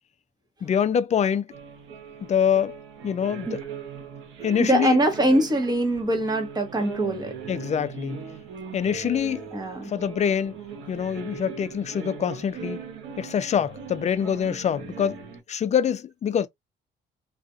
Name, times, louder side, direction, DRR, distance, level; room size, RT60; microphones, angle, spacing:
voice 1, 0.6-1.5 2.3-2.8 3.0-3.6 4.4-5.0 7.5-8.2 8.7-9.4 9.8-10.6 10.9-12.8 13.2-15.2 15.5-16.5, left 8 dB, 35° left, 0.4 m, -25 dB
sound 1, 1.5-15.4, right 6 dB, 80° right, 1.1 m, -39 dB
voice 2, 4.6-7.4 9.5-9.9, right 1 dB, 20° right, 1.1 m, -23 dB
2.5 x 2.4 x 2.5 m
cardioid pair, 90°, 20 cm